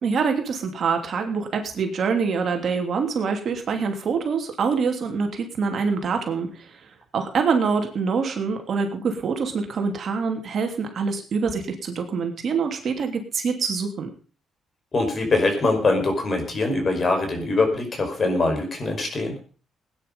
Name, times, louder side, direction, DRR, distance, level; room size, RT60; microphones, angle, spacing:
voice 1, 0.0-6.7 7.1-14.1, right 5 dB, 55° right, 4 dB, 3.0 m, -25 dB
voice 2, 14.9-19.3, left 2 dB, 35° left, 5 dB, 5.2 m, -23 dB
18.0 x 10.0 x 5.3 m, 0.38 s
cardioid pair, 115°, 0 cm